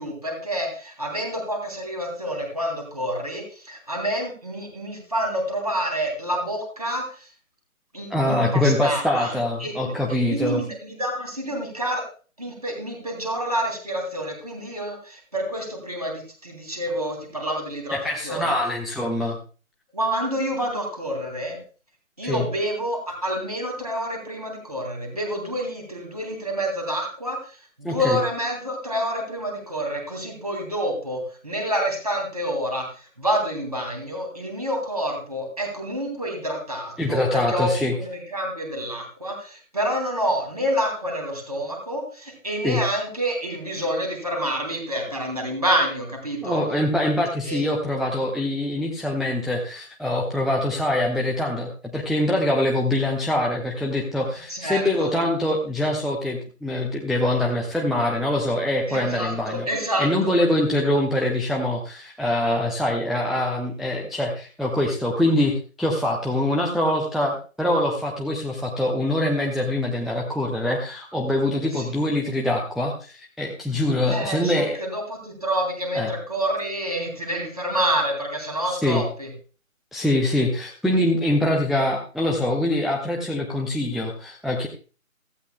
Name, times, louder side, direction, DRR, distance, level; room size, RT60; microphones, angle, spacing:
voice 1, 0.0-7.3 7.9-9.3 9.6-9.7 10.3-12.0 12.4-18.0 18.2-18.5 19.9-21.6 22.2-32.8 33.2-46.6 47.5-47.6 54.5-55.1 58.9-60.3 71.7-71.8 74.1-79.3, equal, 25° right, 1 dB, 3.0 m, -28 dB
voice 2, 8.1-10.6 17.9-19.4 22.2-22.5 27.8-28.2 37.0-37.9 42.6-42.8 46.4-59.7 60.0-74.8 75.9-76.1 78.7-79.0 79.9-84.7, left 1 dB, ahead, -2 dB, 0.6 m, -24 dB
16.0 x 15.0 x 2.2 m, 0.38 s
figure-of-eight pair, 180°, 42 cm